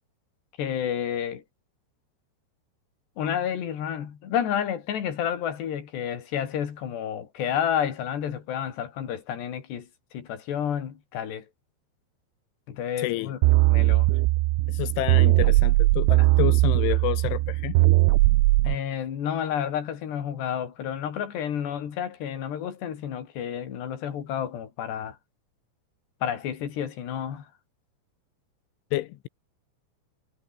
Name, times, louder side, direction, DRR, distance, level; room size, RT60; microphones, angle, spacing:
voice 1, 0.6-1.4 3.2-9.9 10.1-11.4 12.7-13.4 13.6-14.1 18.6-25.2 26.2-27.5, left 9 dB, 60° left, 5.1 m, -30 dB
voice 2, 13.0-13.3 14.7-17.8 28.9-29.3, left 17 dB, 85° left, 3.4 m, -29 dB
sound 1, 13.4-18.8, right 20 dB, 85° right, 3.3 m, -20 dB
omnidirectional pair, 5.6 m